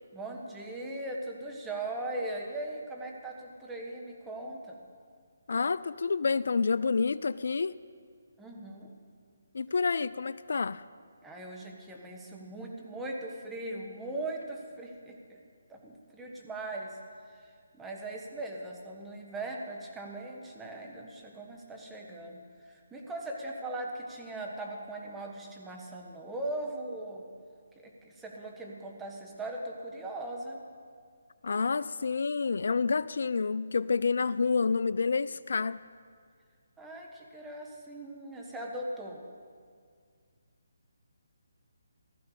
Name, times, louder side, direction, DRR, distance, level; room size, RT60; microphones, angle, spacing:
voice 1, 0.1-4.8 8.4-8.9 11.2-15.4 15.7-17.0 17.3-27.2 27.7-30.6 36.8-39.2, right 2 dB, 5° right, -1 dB, 1.7 m, -39 dB
voice 2, 5.5-7.7 9.5-10.8 31.4-35.8, left 4 dB, 65° left, 17 dB, 0.3 m, -28 dB
15.5 x 14.0 x 5.1 m, 2.1 s
figure-of-eight pair, 150°, 0 cm